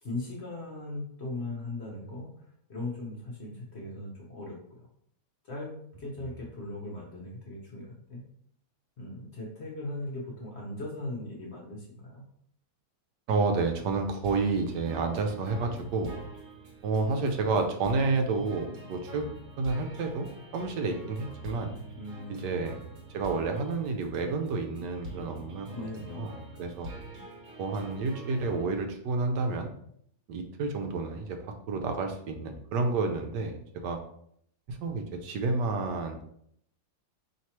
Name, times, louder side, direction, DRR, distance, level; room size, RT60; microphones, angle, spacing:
voice 1, 0.0-4.9 5.4-8.2 9.0-12.2 21.9-22.7 25.7-26.4, left 2 dB, 50° left, -3 dB, 1.0 m, -39 dB
voice 2, 13.3-16.2 16.8-19.3 19.6-21.7 22.3-22.7 23.1-25.7 26.1-26.3 26.6-26.9 27.6-29.7 30.3-31.4 31.7-34.0 34.7-36.2, right 3 dB, 80° right, 5 dB, 1.2 m, -30 dB
sound 1, 14.2-28.6, right 1 dB, 50° right, 1.3 m, -45 dB
4.5 x 3.2 x 2.9 m, 0.68 s
omnidirectional pair, 1.9 m